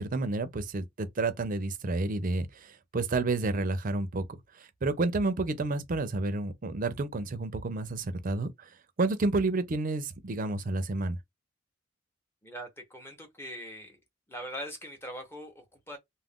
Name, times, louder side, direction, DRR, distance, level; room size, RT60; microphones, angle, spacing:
voice 1, 0.0-4.2 4.6-8.7 9.0-11.2, right 3 dB, 45° right, 0.5 m, -30 dB
voice 2, 12.4-14.0 14.3-16.0, equal, 10° left, 0.7 m, -42 dB
2.4 x 2.1 x 3.5 m
head